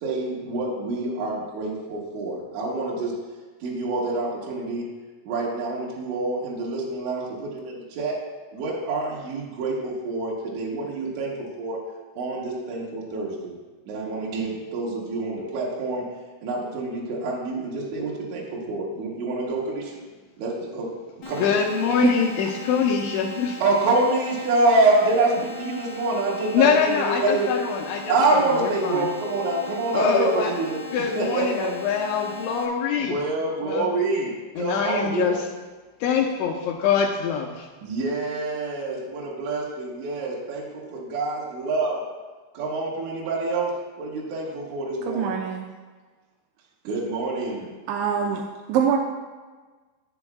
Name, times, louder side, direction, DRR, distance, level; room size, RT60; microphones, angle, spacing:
voice 1, 0.0-3.1 3.6-4.9 5.3-8.1 8.5-11.8 12.1-13.5 13.9-16.0 16.4-20.0 20.4-20.9 21.3-21.5 23.6-27.5 28.1-30.8 31.2-31.7 33.0-35.3 37.8-42.0 42.5-43.7 44.0-45.3 46.9-47.7, right 2 dB, 70° right, -5 dB, 3.7 m, -26 dB
sound 1, 21.2-32.6, left 1 dB, 55° left, 1.4 m, -38 dB
voice 2, 21.4-23.6 26.5-29.1 29.9-30.5 30.9-33.2 33.6-33.9 34.6-35.4 36.0-37.7, left 6 dB, 80° left, 1 dB, 2.8 m, -24 dB
voice 3, 45.1-45.7 47.9-48.4 48.7-49.0, right 7 dB, 90° right, 2 dB, 2.7 m, -23 dB
21.0 x 7.1 x 2.3 m, 1.4 s
omnidirectional pair, 5.9 m